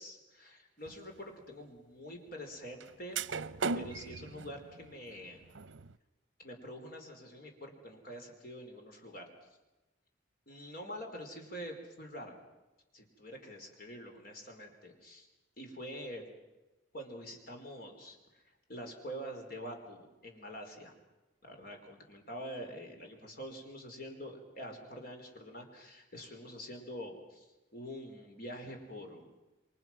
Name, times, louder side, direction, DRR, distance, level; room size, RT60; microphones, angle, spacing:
voice 1, 0.0-3.2 3.7-5.4 6.4-9.2 10.5-12.4 12.9-15.3 15.6-16.2 16.9-18.4 18.7-20.9 21.4-27.5 27.7-29.3, equal, 50° left, 3 dB, 4.6 m, -46 dB
sound 1, 0.9-1.0 2.8-2.9 3.2-5.9, right 4 dB, 80° right, 0.7 m, -37 dB
29.0 x 23.0 x 6.2 m, 1.1 s
head